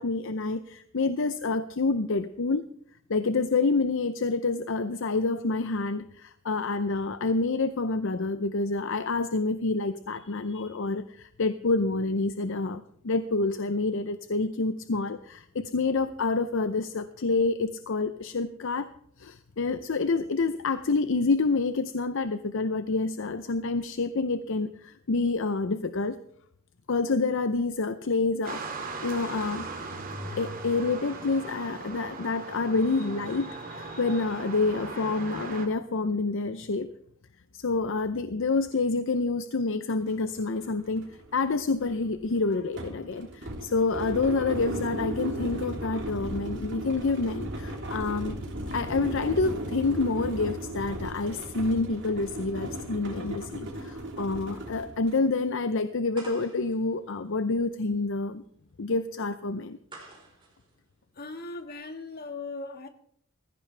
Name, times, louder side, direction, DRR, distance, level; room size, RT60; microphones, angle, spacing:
voice 1, 0.0-2.6 3.1-18.9 19.2-26.2 26.9-29.7 30.4-36.9 37.5-48.4 48.7-58.4 58.8-59.8, left 3 dB, 65° left, 11 dB, 0.7 m, -28 dB
sound 1, 28.4-35.7, right 3 dB, 45° right, 2.3 m, -38 dB
sound 2, 40.1-40.2 40.5-55.3, right 1 dB, 60° right, 3.3 m, -36 dB
sound 3, 56.1-61.8, right 2 dB, 25° right, 4.2 m, -51 dB
voice 2, 61.2-62.9, left 3 dB, 50° left, 6 dB, 1.8 m, -38 dB
19.5 x 15.5 x 3.4 m, 0.66 s
head